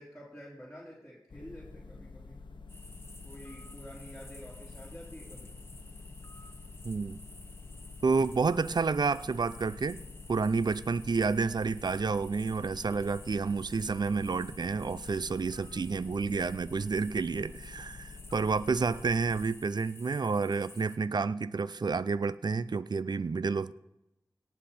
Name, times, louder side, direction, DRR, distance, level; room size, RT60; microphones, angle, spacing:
voice 1, 0.0-2.4 3.2-5.8 18.6-18.7, equal, ahead, -7 dB, 3.7 m, -49 dB
sound 1, 1.3-19.5, left 3 dB, 80° left, 1.0 m, -48 dB
sound 2, 2.7-21.0, left 2 dB, 30° left, 1.1 m, -53 dB
voice 2, 6.8-7.2 8.0-10.0 10.3-23.7, right 4 dB, 60° right, 16 dB, 0.4 m, -30 dB
18.0 x 8.6 x 4.2 m, 0.86 s
wide cardioid pair, 75°, 8 cm